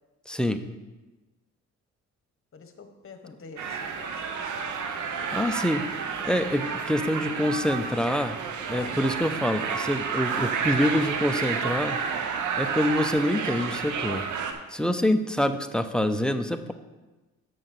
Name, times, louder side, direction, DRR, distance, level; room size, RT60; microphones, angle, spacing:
voice 1, 0.3-0.6 4.9-5.1 5.3-5.8 6.2-8.4 8.7-12.0 12.6-14.2 14.7-16.7, left 1 dB, 5° left, 8 dB, 0.5 m, -26 dB
voice 2, 2.5-5.4 8.7-9.0 14.9-15.0, left 5 dB, 45° left, 7 dB, 1.2 m, -47 dB
sound 1, 3.6-14.5, right 6 dB, 75° right, 0.9 m, -30 dB
7.8 x 5.3 x 6.4 m, 1.1 s
cardioid pair, 90°, 30 cm